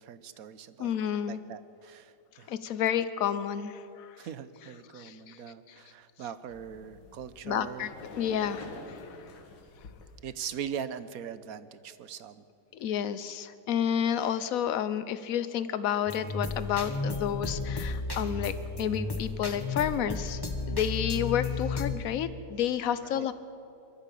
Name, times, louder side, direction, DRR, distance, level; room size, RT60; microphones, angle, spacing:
voice 1, 0.0-0.9 1.3-2.5 4.2-7.9 8.7-9.0 10.2-12.4 23.1-23.3, right 8 dB, 60° right, 14 dB, 1.2 m, -41 dB
voice 2, 0.8-1.4 2.5-4.3 4.9-5.4 7.4-7.9 8.2-9.0 12.7-20.4 20.7-23.3, left 9 dB, 60° left, 13 dB, 1.2 m, -30 dB
sound 1, 6.5-10.2, left 3 dB, 80° left, 2.5 m, -47 dB
sound 2, 16.1-21.9, left 3 dB, 15° left, 0.9 m, -33 dB
23.0 x 14.0 x 8.4 m, 2.7 s
omnidirectional pair, 1.9 m